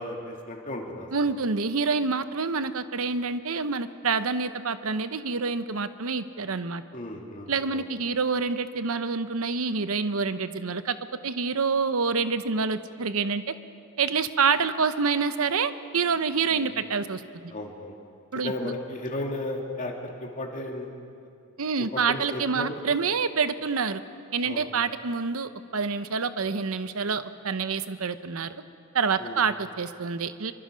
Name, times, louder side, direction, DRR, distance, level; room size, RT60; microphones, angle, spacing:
voice 1, 0.0-1.4 6.9-7.8 16.5-16.7 17.5-17.9 18.4-20.9 21.8-22.8 24.4-24.6 29.2-29.4, left 1 dB, 35° left, 1 dB, 2.5 m, -35 dB
voice 2, 1.1-6.8 7.5-11.0 11.2-13.5 14.0-17.2 18.3-18.7 21.6-24.0 24.3-28.6 28.9-30.5, right 5 dB, 70° right, 12 dB, 0.9 m, -27 dB
25.5 x 24.0 x 5.2 m, 2.4 s
head